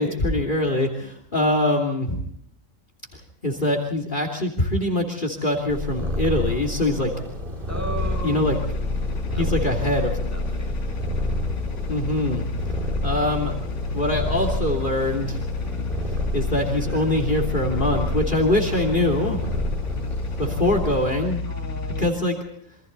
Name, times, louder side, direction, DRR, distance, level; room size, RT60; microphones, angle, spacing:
voice 1, 0.0-2.2 3.4-7.1 8.2-8.6 9.4-10.2 11.9-12.4 13.0-13.5 13.9-15.4 16.3-19.4 20.4-21.4 22.0-22.4, left 1 dB, 40° left, 4 dB, 3.2 m, -23 dB
Purr, 5.7-21.1, left 1 dB, 40° right, 3.5 m, -29 dB
voice 2, 7.7-8.5 9.2-9.7 10.3-11.0 18.7-19.1 21.5-22.2, right 1 dB, 10° right, 2 dB, 5.6 m, -37 dB
sound 1, 8.0-22.1, left 3 dB, 70° left, 1.4 m, -31 dB
28.0 x 25.0 x 4.1 m, 0.68 s
omnidirectional pair, 1.3 m